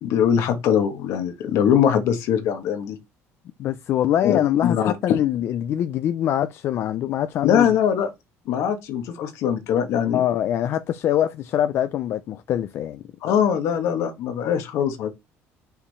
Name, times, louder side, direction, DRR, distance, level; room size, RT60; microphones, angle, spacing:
voice 1, 0.0-3.0 4.2-5.2 7.4-8.1 8.5-10.2 13.2-15.1, left 8 dB, 70° left, 1.5 m, -22 dB
voice 2, 3.6-7.8 10.1-13.0, left 11 dB, 55° left, 0.6 m, -23 dB
5.7 x 5.0 x 4.2 m
cardioid pair, 140°, 5 cm